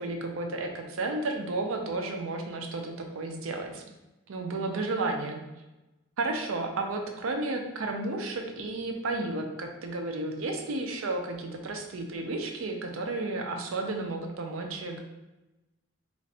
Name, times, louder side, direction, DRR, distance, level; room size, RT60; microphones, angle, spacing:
voice 1, 0.0-3.8 4.3-5.4 6.2-15.0, right 2 dB, 85° right, 3 dB, 0.5 m, -32 dB
3.1 x 2.5 x 2.7 m, 1.0 s
head